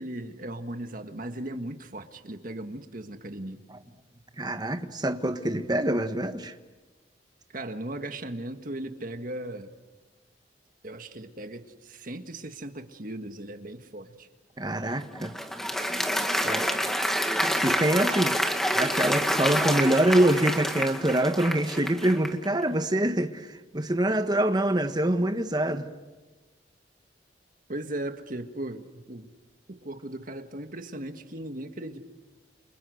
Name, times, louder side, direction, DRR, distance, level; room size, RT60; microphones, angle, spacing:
voice 1, 0.0-3.6 7.5-9.7 10.8-14.3 27.7-29.3 29.7-32.0, right 1 dB, 45° right, 7 dB, 1.7 m, -37 dB
voice 2, 4.4-6.5 14.6-15.3 16.4-16.7 17.6-18.4 18.7-23.5 23.7-25.9, right 1 dB, 20° right, 8 dB, 1.3 m, -25 dB
Applause, 14.8-22.5, equal, ahead, 1.9 m, -28 dB
29.5 x 28.5 x 6.5 m, 1.2 s
head